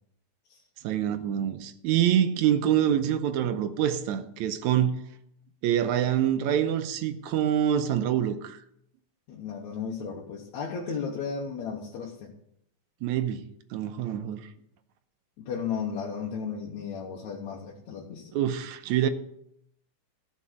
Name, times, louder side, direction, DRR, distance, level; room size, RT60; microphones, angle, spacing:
voice 1, 0.8-5.0 5.6-8.6 13.0-14.5 18.3-19.1, right 10 dB, 85° right, 2.0 m, -26 dB
voice 2, 9.3-12.3 15.4-18.3, left 6 dB, 75° left, 2.5 m, -34 dB
14.0 x 5.6 x 6.2 m
omnidirectional pair, 3.3 m